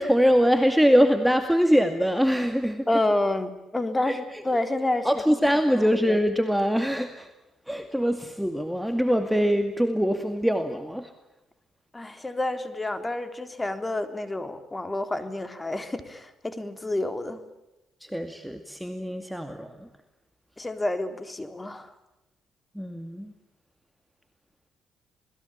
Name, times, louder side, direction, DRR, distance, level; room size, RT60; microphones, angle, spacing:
voice 1, 0.0-2.9 4.0-4.4 5.0-7.3 7.7-11.1 18.0-19.9 22.7-23.3, equal, ahead, 7 dB, 2.2 m, -23 dB
voice 2, 2.9-5.1 11.9-17.4 20.6-21.9, left 2 dB, 15° left, 9 dB, 3.6 m, -29 dB
28.0 x 20.5 x 8.9 m, 0.97 s
cardioid pair, 90°, 0 cm